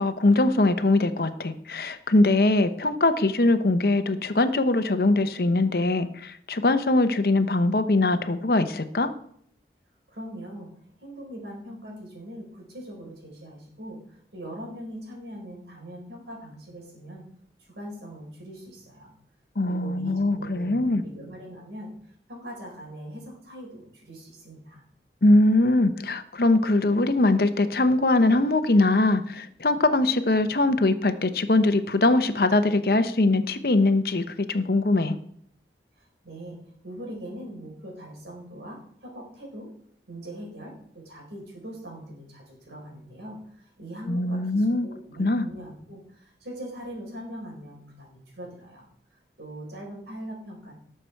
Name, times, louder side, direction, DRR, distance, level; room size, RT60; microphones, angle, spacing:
voice 1, 0.0-9.1 19.6-21.0 25.2-35.2 44.1-44.9 45.2-45.5, left 2 dB, 55° left, 10 dB, 0.8 m, -22 dB
voice 2, 10.1-10.7 11.0-17.2 17.7-19.1 19.6-21.9 22.3-24.8 36.0-36.6 36.8-39.7 40.1-48.9 49.4-50.7, right 1 dB, 80° right, 0 dB, 4.3 m, -41 dB
18.5 x 6.7 x 4.5 m, 0.67 s
head